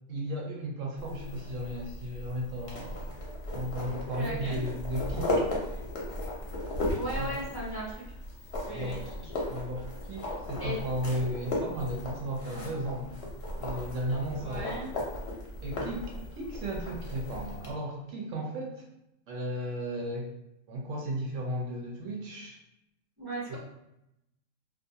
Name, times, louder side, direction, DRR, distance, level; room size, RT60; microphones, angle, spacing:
voice 1, 0.1-3.2 3.5-5.4 7.2-7.3 8.7-13.2 13.6-14.9 15.6-18.8 19.3-20.3 20.7-22.6 23.5-23.6, right 1 dB, 70° right, 0 dB, 0.8 m, -35 dB
sound 1, 1.0-17.7, left 1 dB, 55° left, 0.8 m, -36 dB
voice 2, 4.2-4.6 7.0-8.0 8.7-9.0 9.2-9.4 10.6-10.8 14.3-14.9 23.2-23.6, equal, 30° right, -9 dB, 0.5 m, -37 dB
2.5 x 2.2 x 2.7 m, 0.85 s
omnidirectional pair, 1.5 m